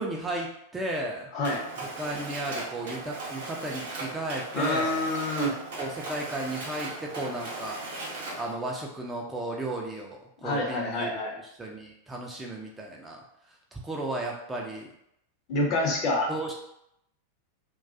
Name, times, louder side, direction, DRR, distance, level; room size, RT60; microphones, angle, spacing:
voice 1, 0.0-1.3 1.8-5.1 5.8-7.8 8.4-14.9 16.3-16.5, right 2 dB, 10° right, -1 dB, 0.3 m, -34 dB
Mechanisms, 1.4-8.5, right 2 dB, 60° right, 0.6 m, -38 dB
voice 2, 4.5-5.5 10.4-11.3 15.5-16.3, left 2 dB, 40° left, -1 dB, 0.6 m, -27 dB
2.2 x 2.2 x 2.5 m, 0.77 s
figure-of-eight pair, 90°, 0 cm